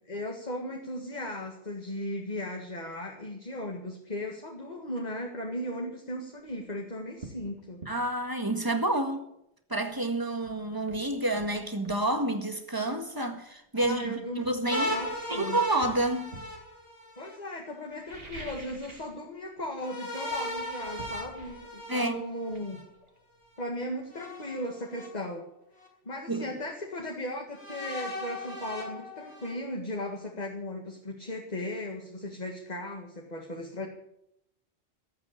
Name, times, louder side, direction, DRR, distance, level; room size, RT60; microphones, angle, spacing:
voice 1, 0.1-7.8 13.7-15.6 17.2-22.9 23.6-25.5 26.1-33.9, left 1 dB, 35° left, 2.0 m, -37 dB
sound 1, 6.4-6.6 7.2-7.5 7.8-8.0 9.9-10.0 10.4-12.1 13.2-13.3 13.8-15.2 15.8-16.6 17.9-19.2 19.4-19.8 20.1-23.7 24.0-24.1, right 2 dB, 55° right, 2.4 m, -48 dB
voice 2, 7.9-9.2 9.7-15.0 15.3-16.3 21.9-22.2 26.3-26.5, right 1 dB, 20° right, 1.7 m, -29 dB
sound 2, 14.7-17.4 19.8-22.8 24.1-25.1 25.8-25.9 27.5-29.5, left 1 dB, 65° left, 4.8 m, -37 dB
18.0 x 8.6 x 8.4 m
omnidirectional pair, 1.2 m